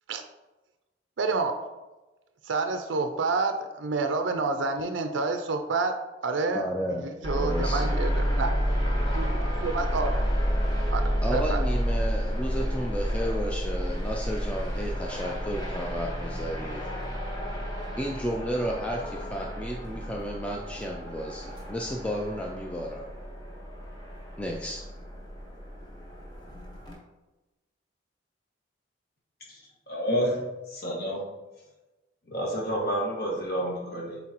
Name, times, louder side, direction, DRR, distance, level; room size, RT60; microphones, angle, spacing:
voice 1, 1.2-1.6 2.5-6.0 6.2-6.7 7.0-8.6 9.1-10.2 10.9-11.6, right 3 dB, 80° right, 7 dB, 0.5 m, -28 dB
voice 2, 6.5-7.1 7.3-7.9 11.2-16.9 18.0-23.1 24.4-24.8, equal, 5° left, -1 dB, 0.4 m, -33 dB
sound 1, 7.2-26.9, equal, 25° left, 1.3 m, -30 dB
voice 3, 29.9-30.4 30.7-31.2 32.3-34.2, equal, 55° left, -4 dB, 1.7 m, -29 dB
8.4 x 4.0 x 3.0 m, 1.1 s
head